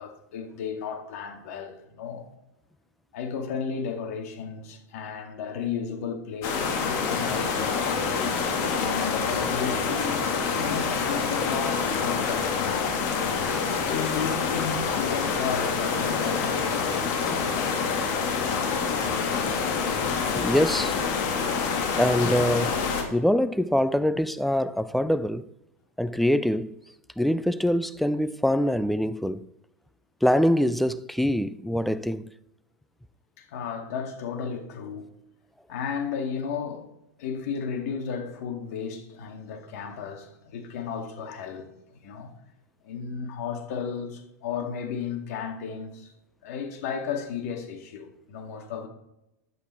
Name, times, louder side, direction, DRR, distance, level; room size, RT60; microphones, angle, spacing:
voice 1, 0.0-2.3 3.1-8.1 8.6-10.3 10.6-13.1 13.9-18.0 33.4-35.1 35.7-36.8 37.2-41.7 42.0-42.3 42.8-46.1 46.4-48.9, left 6 dB, 65° left, 2.3 m, -34 dB
sound 1, 6.4-23.0, left 5 dB, 45° left, 2.2 m, -27 dB
voice 2, 20.3-21.0 21.9-22.8 23.1-25.4 26.0-26.8 27.2-29.4 30.2-32.3, equal, ahead, 0.4 m, -24 dB
10.5 x 8.3 x 4.5 m
hypercardioid pair, 120°, 9 cm